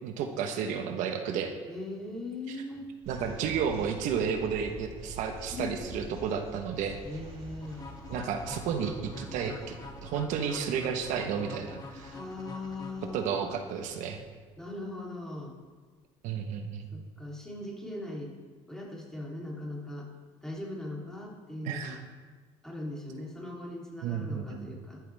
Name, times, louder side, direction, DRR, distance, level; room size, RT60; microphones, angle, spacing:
voice 1, 0.0-1.5 2.5-2.6 3.1-7.0 8.1-9.7 10.0-12.2 13.1-14.2 16.2-16.9 21.6-22.0 24.0-24.7, right 7 dB, 75° right, 4 dB, 1.4 m, -32 dB
voice 2, 1.7-2.9 5.5-6.1 7.0-7.9 12.1-13.5 14.6-15.5 16.9-18.3 18.7-20.1 20.4-22.0 22.6-25.0, left 2 dB, 5° left, -4 dB, 3.6 m, -40 dB
sound 1, 3.0-14.3, right 2 dB, 50° right, 3.6 m, -47 dB
sound 2, 7.6-13.6, left 3 dB, 30° left, 2.5 m, -46 dB
14.0 x 11.5 x 3.6 m, 1.4 s
cardioid pair, 115°, 13 cm